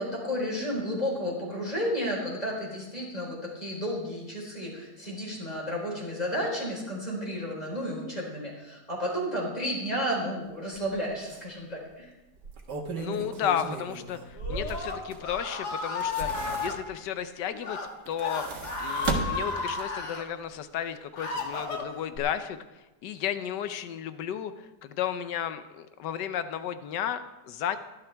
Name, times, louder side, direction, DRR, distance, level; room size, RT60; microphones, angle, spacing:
voice 1, 0.0-12.1, equal, 20° left, -3 dB, 4.3 m, -32 dB
sound 1, 10.8-10.9 11.3-11.4 12.3-15.4 15.8-17.1 18.0-20.1 20.4-20.5, right 4 dB, 80° right, 2.0 m, -35 dB
voice 2, 12.9-17.8 18.1-18.4 18.8-22.6 23.0-27.8, left 9 dB, 90° left, 11 dB, 1.4 m, -33 dB
Screaming, 14.4-16.7 17.5-17.9 18.2-20.2 20.8-22.2, left 4 dB, 70° left, 2.3 m, -33 dB
18.0 x 11.5 x 3.4 m, 1.1 s
omnidirectional pair, 1.8 m